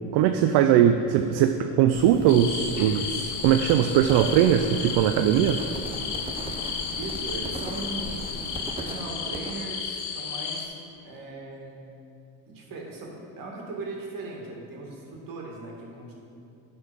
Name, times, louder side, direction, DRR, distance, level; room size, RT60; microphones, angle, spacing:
voice 1, 0.1-5.6, right 10 dB, 70° right, 7 dB, 0.5 m, -20 dB
sound 1, 1.9-8.6, left 2 dB, 45° left, 2.0 m, -41 dB
Crickets - Hard, 2.3-10.6, left 6 dB, 75° left, 1.1 m, -33 dB
sound 2, 3.5-9.8, right 2 dB, 15° right, 0.8 m, -40 dB
voice 2, 7.0-8.3 8.6-10.7 11.0-11.9 12.5-16.1, right 3 dB, 55° right, -1 dB, 2.2 m, -38 dB
11.5 x 4.4 x 5.3 m, 2.6 s
supercardioid pair, 100°, 41 cm